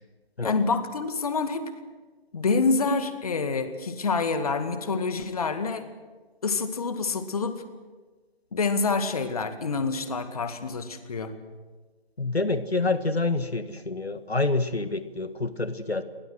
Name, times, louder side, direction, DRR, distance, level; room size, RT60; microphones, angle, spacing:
voice 1, 0.4-1.7 2.3-5.9 6.4-7.6 8.5-11.3, left 4 dB, 35° left, 9 dB, 2.0 m, -27 dB
voice 2, 12.2-16.0, left 3 dB, 80° left, 11 dB, 1.8 m, -27 dB
30.0 x 23.0 x 6.3 m, 1.3 s
figure-of-eight pair, 155°, 31 cm